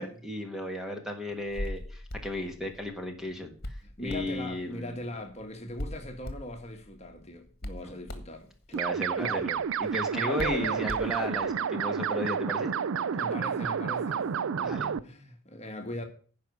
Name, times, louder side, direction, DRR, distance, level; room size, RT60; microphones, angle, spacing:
voice 1, 0.0-5.0 8.7-12.7 14.6-14.9, left 1 dB, ahead, 1.4 m, -35 dB
Hands, 1.3-11.6, left 1 dB, 50° left, 1.6 m, -42 dB
voice 2, 3.8-8.8 9.2-9.5 10.1-10.9 13.1-14.2 14.5-16.1, left 1 dB, 30° left, 1.5 m, -40 dB
sound 1, 8.7-15.0, right 7 dB, 65° right, 0.4 m, -30 dB
10.5 x 5.2 x 8.2 m
head